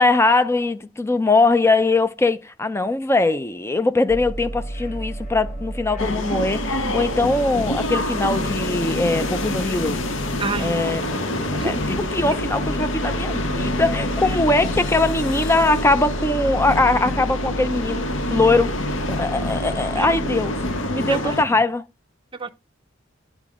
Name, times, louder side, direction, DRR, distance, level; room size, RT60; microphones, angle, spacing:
voice 1, 0.0-10.0 10.6-11.0 11.6-18.1 18.3-18.7 19.1-20.6 20.8-21.8, left 2 dB, 15° left, 0.5 m, -21 dB
sound 1, 4.1-20.8, right 1 dB, 40° left, 1.3 m, -32 dB
sound 2, 6.0-21.4, left 1 dB, 70° left, 1.0 m, -27 dB
voice 2, 10.4-10.8 11.5-11.7 20.0-20.1 21.1-21.6 22.3-22.5, right 4 dB, 25° right, 0.7 m, -29 dB
10.5 x 5.1 x 3.6 m
head